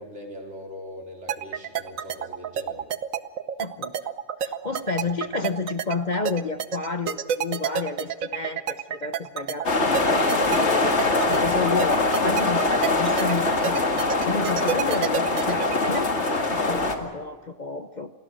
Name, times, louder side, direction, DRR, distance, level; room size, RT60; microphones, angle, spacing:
voice 1, 0.0-2.9, left 1 dB, 55° right, 1 dB, 4.5 m, -41 dB
sound 1, 1.3-16.0, right 9 dB, 85° right, 1.4 m, -29 dB
voice 2, 3.6-4.0 4.4-16.1 16.5-18.1, left 4 dB, 40° left, 9 dB, 0.9 m, -31 dB
sound 2, 9.6-16.9, left 3 dB, 55° left, 2.4 m, -23 dB
28.5 x 18.0 x 6.4 m, 1.5 s
omnidirectional pair, 1.4 m